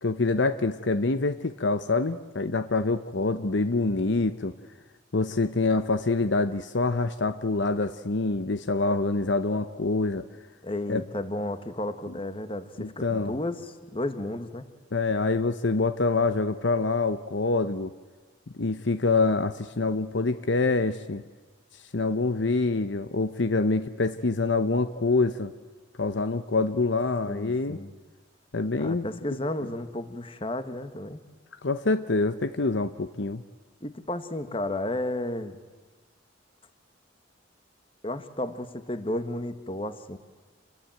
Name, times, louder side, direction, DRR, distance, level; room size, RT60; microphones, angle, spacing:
voice 1, 0.0-4.5 5.1-10.2 10.9-11.0 12.8-13.3 14.9-17.9 18.6-21.2 21.9-25.5 26.0-27.8 28.5-29.1 31.6-33.4, left 3 dB, 65° left, 11 dB, 0.9 m, -26 dB
voice 2, 10.6-14.6 27.3-27.9 28.8-31.2 33.8-35.6 38.0-40.2, left 1 dB, 30° left, 10 dB, 1.5 m, -33 dB
28.0 x 21.5 x 9.0 m, 1.4 s
head